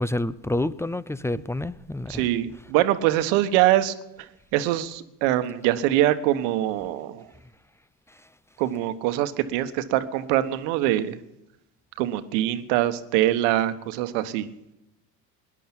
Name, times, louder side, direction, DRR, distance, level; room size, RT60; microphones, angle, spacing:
voice 1, 0.0-2.2, left 1 dB, 5° left, 0.5 m, -28 dB
voice 2, 2.1-7.3 8.6-11.2 12.0-14.5, right 13 dB, 70° right, 1.4 m, -24 dB
20.0 x 10.5 x 6.0 m
hypercardioid pair, 75°, 48 cm